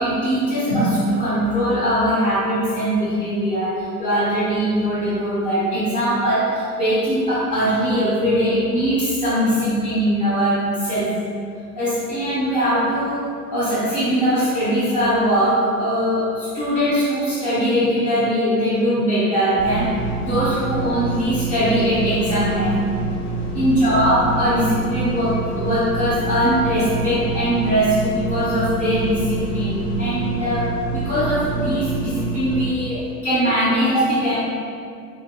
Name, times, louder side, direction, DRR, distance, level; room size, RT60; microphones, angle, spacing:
voice 1, 0.0-11.1 11.8-13.2 13.5-19.9 20.2-22.8 23.5-34.3, equal, 20° left, -15 dB, 1.4 m, -21 dB
sound 1, 19.6-32.7, right 3 dB, 65° left, 0.8 m, -27 dB
6.1 x 2.1 x 2.4 m, 2.4 s
figure-of-eight pair, 95°, 48 cm